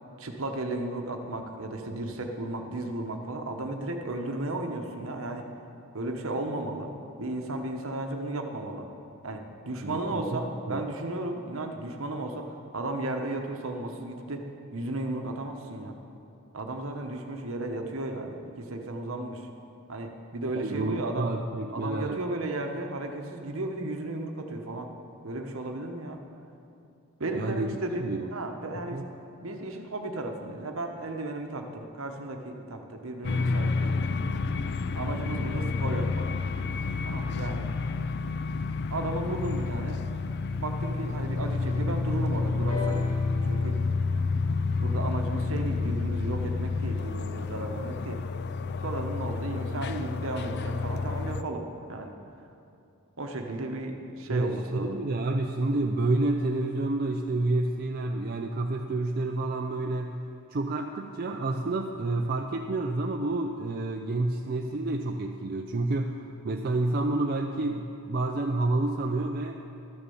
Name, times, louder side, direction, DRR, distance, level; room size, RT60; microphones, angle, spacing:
voice 1, 0.2-5.5 5.9-6.9 7.2-8.9 9.2-16.0 16.5-19.5 19.9-21.3 21.7-24.9 25.2-26.2 27.2-29.0 29.4-34.0 34.9-36.3 37.0-37.7 38.5-38.6 38.9-40.0 40.6-43.0 43.4-43.8 44.8-48.2 48.8-52.1 53.2-55.0, right 2 dB, 65° right, 4 dB, 1.1 m, -34 dB
voice 2, 9.8-10.4 10.7-10.8 20.5-22.2 27.3-28.3 28.9-29.0 54.3-60.2 60.5-66.2 66.4-69.5, right 2 dB, 45° right, 2 dB, 0.5 m, -29 dB
sound 1, 33.2-51.4, left 4 dB, 50° left, 0.4 m, -29 dB
sound 2, 42.7-46.5 47.4-47.5, left 5 dB, 85° left, 2.3 m, -41 dB
12.5 x 6.8 x 7.0 m, 2.7 s
head